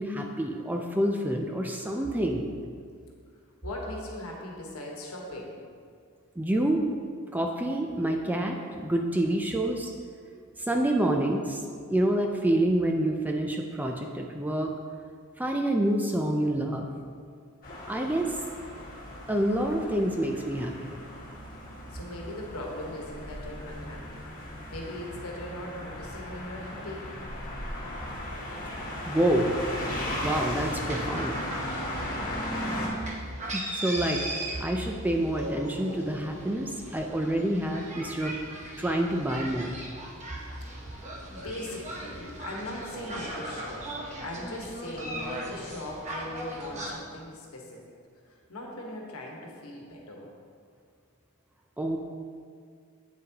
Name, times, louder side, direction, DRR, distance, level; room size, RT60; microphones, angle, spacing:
voice 1, 0.0-2.4 6.4-6.9 7.3-9.9 10.3-11.6 11.9-14.7 15.4-16.9 17.9-18.3 19.3-21.0 28.7-29.5 30.2-31.4 33.5-38.3 38.8-39.7 51.8-52.0, right 1 dB, 10° right, 2 dB, 0.3 m, -27 dB
voice 2, 3.6-5.6 21.9-24.3 24.7-27.1 31.8-32.6 40.5-41.0 41.3-47.8 48.3-50.3, left 1 dB, 75° left, -1 dB, 1.3 m, -40 dB
sound 1, 17.6-32.9, left 1 dB, 40° left, 1.7 m, -36 dB
sound 2, 30.6-46.9, right 1 dB, 30° right, 0.9 m, -39 dB
8.2 x 7.3 x 2.9 m, 2.2 s
head